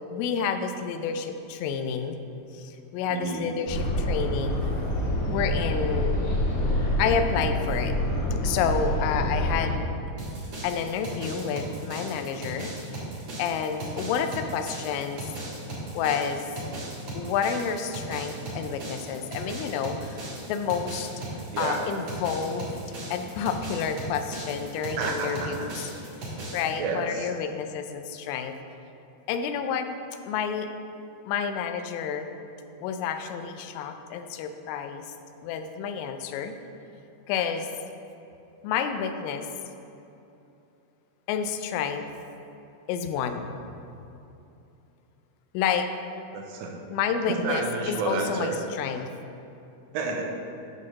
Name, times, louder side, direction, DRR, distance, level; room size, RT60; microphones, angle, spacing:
voice 1, 0.1-2.2 2.5-4.6 5.3-6.2 7.0-8.0 8.4-9.8 10.6-12.7 13.4-15.3 15.9-16.5 17.1-21.1 21.6-22.8 23.1-25.9 26.3-28.6 29.3-29.9 30.3-30.7 31.3-32.3 32.8-35.1 35.4-36.5 37.3-37.7 38.6-39.5 41.3-42.1 42.9-43.7 45.5-45.9 46.9-49.1, left 7 dB, 90° left, 7 dB, 3.1 m, -29 dB
voice 2, 3.1-3.5 21.5-21.8 25.0-25.7 26.8-27.3 46.3-46.7 47.3-48.6 49.9-50.2, right 4 dB, 85° right, 1 dB, 3.3 m, -30 dB
sound 1, 3.7-9.7, equal, 65° left, 2.9 m, -26 dB
sound 2, 10.2-26.7, right 1 dB, 60° right, 1.6 m, -37 dB
9.2 x 3.9 x 6.2 m, 2.8 s
omnidirectional pair, 5.6 m